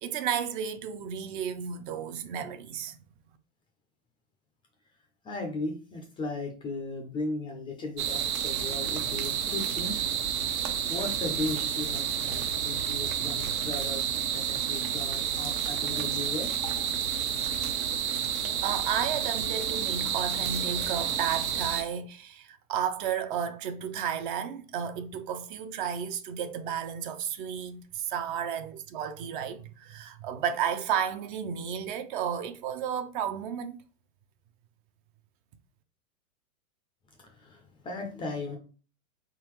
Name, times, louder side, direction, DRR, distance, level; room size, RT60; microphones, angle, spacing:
voice 1, 0.0-3.0 18.6-33.8, right 8 dB, 40° right, 0.5 m, -33 dB
voice 2, 5.2-10.0 10.5-16.5 37.2-38.6, left 2 dB, 15° left, 0.4 m, -37 dB
sound 1, 8.0-21.8, right 8 dB, 75° right, 1.0 m, -30 dB
4.2 x 3.7 x 3.0 m
hypercardioid pair, 130°, 42 cm